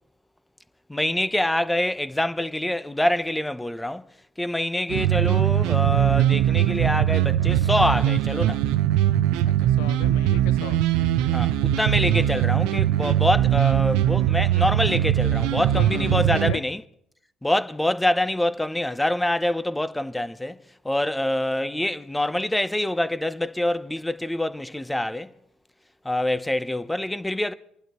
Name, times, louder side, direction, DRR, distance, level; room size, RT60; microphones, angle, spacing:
voice 1, 0.9-4.1 4.4-8.6 11.3-16.8 17.4-25.3 26.0-27.5, left 1 dB, 10° left, 0.9 m, -25 dB
sound 1, 4.9-16.5, right 12 dB, 80° right, 0.5 m, -21 dB
voice 2, 9.5-10.8 15.7-16.6, left 14 dB, 80° left, 0.5 m, -36 dB
26.0 x 11.5 x 3.1 m
hypercardioid pair, 55°, 0 cm